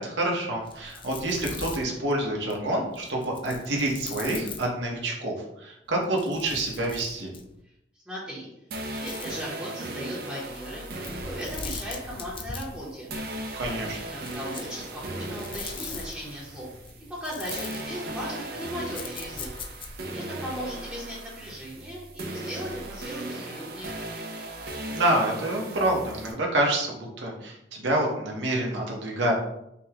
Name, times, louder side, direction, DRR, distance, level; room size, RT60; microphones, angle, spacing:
voice 1, 0.0-7.3 13.5-14.0 24.9-29.3, right 1 dB, 80° right, -1 dB, 1.0 m, -27 dB
sound 1, 0.6-5.1 5.9-7.6 8.7-9.5 11.0-20.1, left 4 dB, 30° left, 0.4 m, -42 dB
voice 2, 8.1-8.5 8.8-10.9 11.2-13.1 14.1-16.7 17.1-19.5 20.1-23.9, equal, 5° right, -7 dB, 0.9 m, -37 dB
sound 2, 8.7-17.2 17.5-26.3, right 1 dB, 60° right, 0.7 m, -38 dB
5.3 x 2.3 x 2.9 m, 0.81 s
head